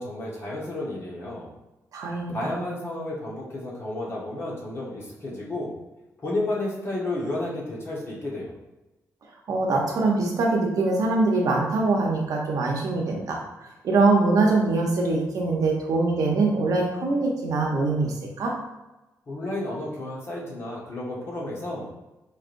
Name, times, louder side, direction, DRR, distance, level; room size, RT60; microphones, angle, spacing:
voice 1, 0.0-1.5 2.3-5.7 6.2-8.5 19.3-21.9, left 1 dB, 40° left, -4 dB, 1.2 m, -32 dB
voice 2, 1.9-2.5 9.5-13.4 13.8-18.5, right 3 dB, 70° right, 0 dB, 0.8 m, -23 dB
4.6 x 3.3 x 2.6 m, 1.0 s
wide cardioid pair, 150°, 6 cm